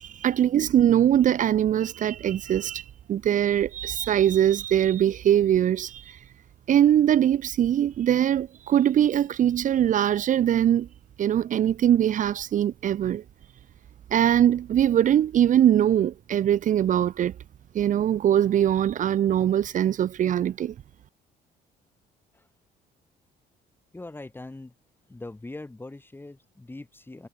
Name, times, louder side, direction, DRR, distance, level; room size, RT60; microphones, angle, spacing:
voice 1, 0.0-6.2 6.7-10.9 11.2-13.2 14.1-17.3 17.7-20.7, right 10 dB, 50° right, 0.9 m, -22 dB
voice 2, 23.9-24.7 25.1-27.3, left 2 dB, 10° left, 6.7 m, -41 dB
cardioid pair, 110°, 17 cm